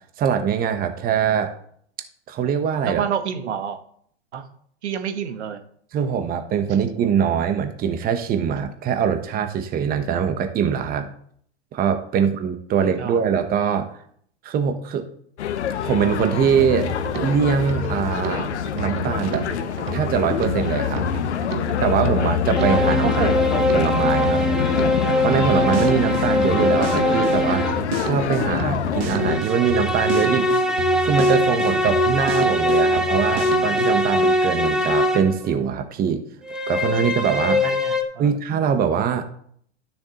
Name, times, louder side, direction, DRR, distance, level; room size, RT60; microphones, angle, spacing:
voice 1, 0.2-1.5 2.3-3.0 5.9-11.1 11.7-13.9 14.4-15.0 15.8-16.9 17.2-19.4 19.9-21.0 21.8-23.3 23.7-24.4 25.2-27.7 28.0-30.5 31.0-36.2 36.7-37.6 38.2-39.3, right 7 dB, 25° right, 8 dB, 1.1 m, -22 dB
voice 2, 2.8-3.8 4.3-4.5 4.8-5.6 12.1-12.2 13.0-13.2 23.0-23.7 37.6-38.3, right 8 dB, 80° right, 8 dB, 1.4 m, -28 dB
sound 1, 15.4-29.4, left 10 dB, 80° left, 0.8 m, -25 dB
Drum kit, 16.6-34.0, right 7 dB, 60° right, 1.4 m, -32 dB
sound 2, 22.6-27.9 29.0-35.4 36.4-38.0, left 1 dB, ahead, 0.9 m, -22 dB
12.5 x 7.0 x 3.0 m, 0.63 s
hypercardioid pair, 115°, 34 cm